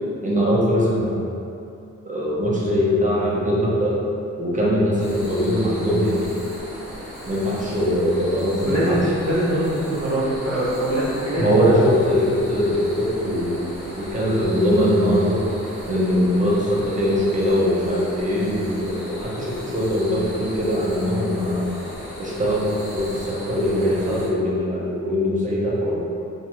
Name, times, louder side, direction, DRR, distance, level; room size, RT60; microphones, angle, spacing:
voice 1, 0.2-1.2 2.0-4.0 4.4-6.3 7.3-9.0 11.4-13.7 14.0-15.4 15.9-21.7 22.2-26.0, equal, 25° right, -6 dB, 0.5 m, -21 dB
sound 1, 5.0-24.3, equal, 65° left, 1.2 m, -37 dB
voice 2, 8.6-11.7, equal, 70° right, -11 dB, 0.8 m, -23 dB
2.6 x 2.1 x 3.0 m, 2.7 s
wide cardioid pair, 115°, 29 cm